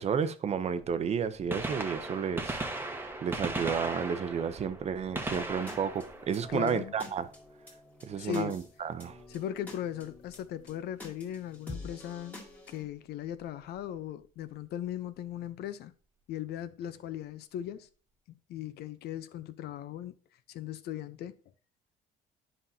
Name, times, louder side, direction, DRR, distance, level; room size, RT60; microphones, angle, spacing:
voice 1, 0.0-2.9 3.2-7.3 8.0-9.2, right 7 dB, 40° right, 0.7 m, -32 dB
Gunshot gunfire, 1.5-7.2 9.2-9.3 10.3-10.4 12.0-12.1 13.5-13.6 13.8-13.9, right 2 dB, 15° right, 1.0 m, -37 dB
sound 1, 5.3-12.8, left 2 dB, 10° left, 2.0 m, -49 dB
voice 2, 6.5-6.9 8.2-8.6 9.3-12.4 12.7-15.9 16.3-17.9 18.5-20.2 20.5-21.3, left 11 dB, 70° left, 0.6 m, -38 dB
9.8 x 5.5 x 2.7 m
cardioid pair, 110°, 17 cm